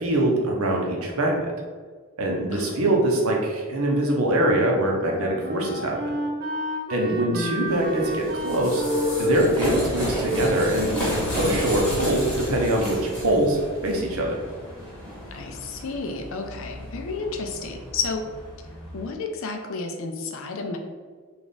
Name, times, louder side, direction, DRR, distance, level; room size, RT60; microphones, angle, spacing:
voice 1, 0.0-1.5 2.2-6.1 6.9-8.8 9.2-14.4, right 1 dB, 85° right, 0 dB, 0.7 m, -23 dB
voice 2, 2.5-3.1 7.1-7.7 15.3-18.2 18.9-20.8, left 4 dB, 65° left, 4 dB, 0.5 m, -31 dB
Wind instrument woodwind instrument, 4.9-11.3, right 1 dB, 45° right, 0.6 m, -33 dB
sound 1, 7.7-19.1, equal, 5° left, 1.1 m, -30 dB
3.4 x 2.4 x 4.0 m, 1.5 s
head